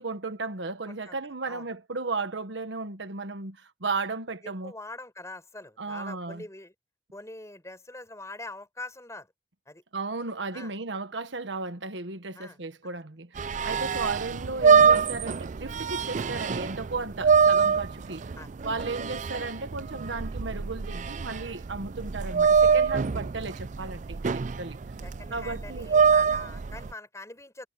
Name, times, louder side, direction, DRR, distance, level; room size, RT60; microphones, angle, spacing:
voice 1, 0.0-4.7 5.8-6.4 9.9-18.3 18.6-24.8 25.3-25.9, right 3 dB, 90° right, 1.4 m, -35 dB
voice 2, 4.4-6.7 7.1-9.3 9.7-9.8 10.5-10.7 12.4-12.6 13.6-13.9 18.4-18.5 25.0-27.7, left 2 dB, 15° left, 6.1 m, -44 dB
sound 1, 13.4-26.9, right 6 dB, 45° right, 0.4 m, -24 dB
head